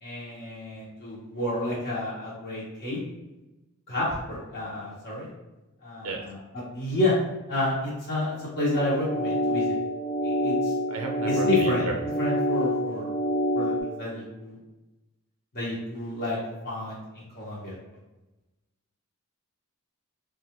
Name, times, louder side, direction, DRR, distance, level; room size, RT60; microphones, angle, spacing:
voice 1, 0.0-3.0 3.9-5.3 5.8-7.1 7.5-9.7 10.2-10.7 11.2-11.8 12.2-13.1 13.5-14.6 15.5-16.4 16.6-17.7, left 1 dB, 45° left, -7 dB, 1.1 m, -30 dB
sound 1, 8.7-13.8, equal, 30° left, 0.6 m, -27 dB
voice 2, 10.9-12.0, right 2 dB, 75° right, 3 dB, 0.5 m, -32 dB
3.9 x 2.4 x 3.0 m, 1.0 s
head